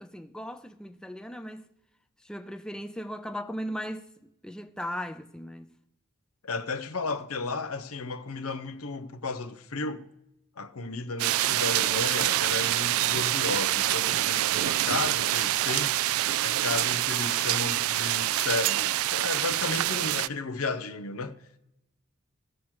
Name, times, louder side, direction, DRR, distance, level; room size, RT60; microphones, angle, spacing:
voice 1, 0.0-1.6 2.2-5.7, equal, 5° left, 0.4 m, -37 dB
voice 2, 6.4-10.0 10.6-16.0 16.4-21.4, left 3 dB, 90° left, 0.7 m, -33 dB
sound 1, 11.2-20.3, right 14 dB, 85° right, 0.3 m, -26 dB
18.5 x 7.3 x 3.1 m
head